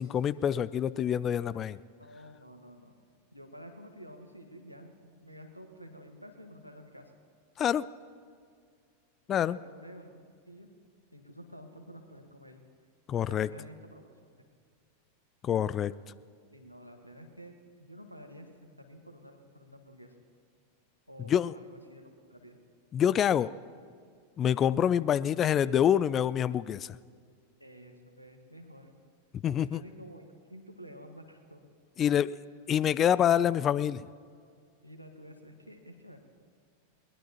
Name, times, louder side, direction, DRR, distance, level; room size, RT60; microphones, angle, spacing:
voice 1, 0.0-1.8 7.6-7.9 9.3-9.6 13.1-13.5 15.4-15.9 21.3-21.5 22.9-23.5 24.4-27.0 29.4-29.8 32.0-32.3 32.7-34.1, left 9 dB, 30° left, 19 dB, 0.3 m, -26 dB
voice 2, 2.0-2.9 3.3-7.1 9.4-10.2 10.5-10.7 11.1-12.6 13.2-14.1 16.5-20.2 21.1-22.6 27.6-28.9 29.6-31.7 32.0-32.4 34.8-36.2, equal, 90° right, 4 dB, 1.6 m, -50 dB
22.0 x 19.5 x 3.0 m, 2.1 s
figure-of-eight pair, 90°, 0 cm